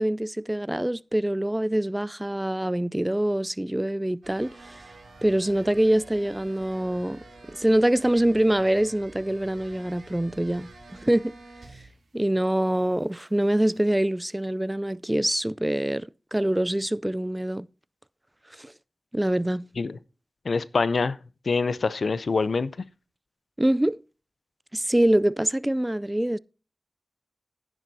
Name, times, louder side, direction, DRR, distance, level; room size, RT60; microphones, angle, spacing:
voice 1, 0.0-4.8 5.2-11.3 12.1-17.7 18.6-18.7 19.1-19.7 23.6-24.0 24.7-26.4, right 1 dB, 15° right, 0.3 m, -25 dB
sound 1, 4.2-12.1 12.4-13.9, right 2 dB, 85° right, 3.1 m, -49 dB
voice 2, 20.4-21.2 21.5-22.7, left 4 dB, 75° left, 0.5 m, -25 dB
10.5 x 9.9 x 2.7 m
cardioid pair, 45°, 0 cm